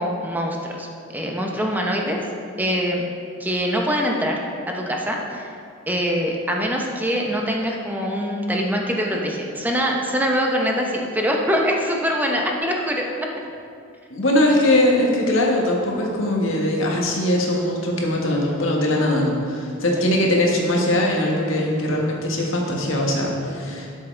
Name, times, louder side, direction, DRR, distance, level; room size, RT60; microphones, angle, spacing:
voice 1, 0.0-2.2 2.6-3.0 3.4-5.6 5.9-13.1 19.9-20.0, equal, 10° right, 0 dB, 0.9 m, -24 dB
voice 2, 14.1-23.9, left 1 dB, 85° left, -1 dB, 1.6 m, -21 dB
12.0 x 7.2 x 3.4 m, 2.3 s
head